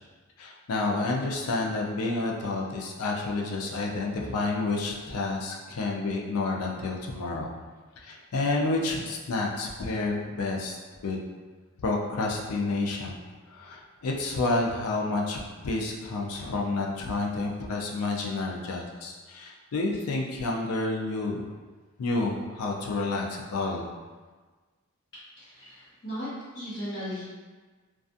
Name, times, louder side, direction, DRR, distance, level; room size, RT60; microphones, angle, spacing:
voice 1, 0.4-7.5 8.0-10.8 11.0-11.2 11.8-13.2 13.5-21.4 22.0-23.8, left 3 dB, 75° left, -1 dB, 0.4 m, -29 dB
voice 2, 25.4-26.3 26.5-27.2, equal, 50° left, -14 dB, 0.9 m, -36 dB
2.4 x 2.3 x 2.5 m, 1.4 s
head